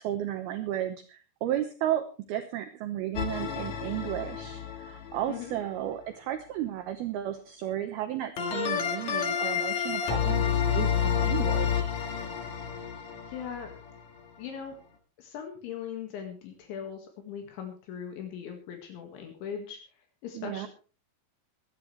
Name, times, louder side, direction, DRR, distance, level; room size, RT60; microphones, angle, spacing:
voice 1, 0.0-11.9 20.3-20.7, right 12 dB, 75° right, 7 dB, 2.4 m, -33 dB
sound 1, 3.2-5.3 8.4-14.0, left 8 dB, 55° left, 2.1 m, -29 dB
voice 2, 13.3-13.7 14.4-14.8 15.2-19.8 20.2-20.7, left 8 dB, 75° left, 3 dB, 4.2 m, -39 dB
24.0 x 9.8 x 3.3 m, 0.36 s
omnidirectional pair, 5.4 m